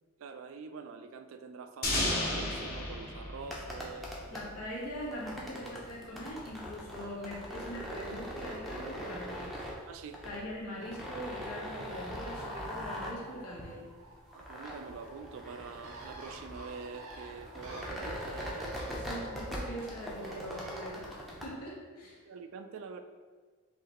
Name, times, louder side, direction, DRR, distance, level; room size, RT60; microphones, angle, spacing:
voice 1, 0.2-4.5 9.9-10.2 14.3-18.9 22.3-23.0, right 5 dB, 60° right, 9 dB, 0.3 m, -45 dB
sound 1, 1.8-4.6, left 1 dB, 45° left, 0.8 m, -33 dB
sound 2, 3.4-21.5, equal, ahead, 0.5 m, -42 dB
voice 2, 4.3-9.6 10.2-13.9 18.9-22.2, equal, 90° left, -4 dB, 1.2 m, -42 dB
Bird, 11.7-21.0, right 2 dB, 75° right, 0.7 m, -51 dB
4.9 x 3.0 x 2.9 m, 1.5 s
head